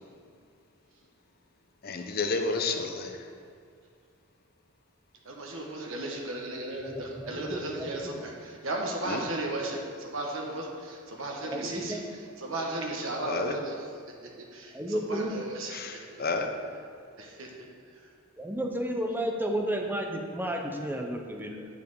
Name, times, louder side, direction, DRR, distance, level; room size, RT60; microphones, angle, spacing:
voice 1, 1.8-3.1 9.1-9.2 13.2-13.5 15.7-15.9 16.2-16.5, left 3 dB, 45° left, 4 dB, 0.7 m, -30 dB
voice 2, 5.2-12.0 12.4-14.0 14.4-16.3 17.2-18.1, right 1 dB, 65° right, -1 dB, 1.2 m, -35 dB
voice 3, 6.9-8.3 11.4-12.0 14.7-15.4 18.4-21.7, right 1 dB, 10° right, 2 dB, 0.7 m, -32 dB
7.6 x 7.1 x 4.7 m, 2.2 s
head